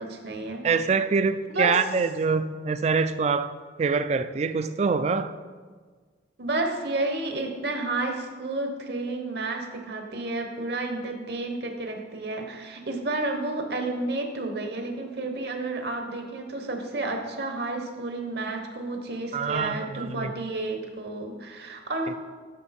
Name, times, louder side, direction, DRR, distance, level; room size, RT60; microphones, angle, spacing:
voice 1, 0.0-0.6 1.5-1.8 6.4-22.2, right 2 dB, 60° right, 4 dB, 1.1 m, -31 dB
voice 2, 0.6-3.5 3.8-5.3 19.3-20.3, right 5 dB, 35° right, 12 dB, 0.3 m, -25 dB
11.5 x 5.6 x 4.2 m, 1.5 s
head